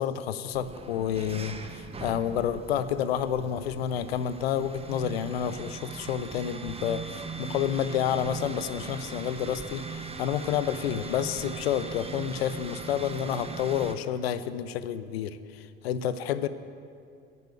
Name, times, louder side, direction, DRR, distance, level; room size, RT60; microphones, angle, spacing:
voice 1, 0.0-16.5, left 9 dB, 80° left, 13 dB, 0.5 m, -29 dB
sound 1, 0.5-13.9, right 4 dB, 20° right, 0.8 m, -40 dB
9.8 x 6.9 x 8.3 m, 2.5 s
hypercardioid pair, 60°, 30 cm